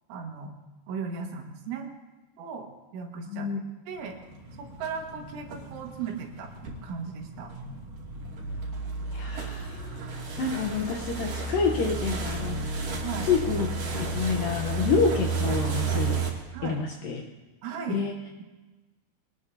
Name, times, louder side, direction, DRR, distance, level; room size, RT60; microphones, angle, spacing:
voice 1, 0.1-0.6 0.9-1.9 2.4-2.7 2.9-3.5 3.9-4.2 4.6-7.5 13.0-13.3 16.5-16.8 17.6-18.0, right 6 dB, 85° right, 2 dB, 4.2 m, -36 dB
voice 2, 3.3-3.6 9.1-10.1 10.4-12.9 13.2-13.7 13.9-16.3 16.6-17.2 17.9-18.2, left 5 dB, 75° left, 1 dB, 2.1 m, -28 dB
sound 1, 4.0-16.3, right 4 dB, 50° right, 3.9 m, -32 dB
24.0 x 19.0 x 2.8 m, 1.2 s
omnidirectional pair, 5.3 m